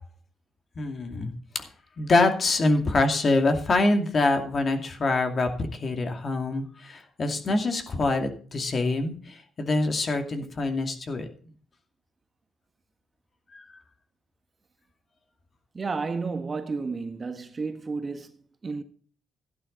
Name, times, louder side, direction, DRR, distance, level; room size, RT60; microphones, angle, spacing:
voice 1, 0.8-1.7 2.0-11.5 13.5-13.6, left 2 dB, 40° left, 2.5 m, -25 dB
voice 2, 15.7-18.8, right 4 dB, 35° right, 1.4 m, -32 dB
13.0 x 11.0 x 4.0 m
cardioid pair, 90°, 0 cm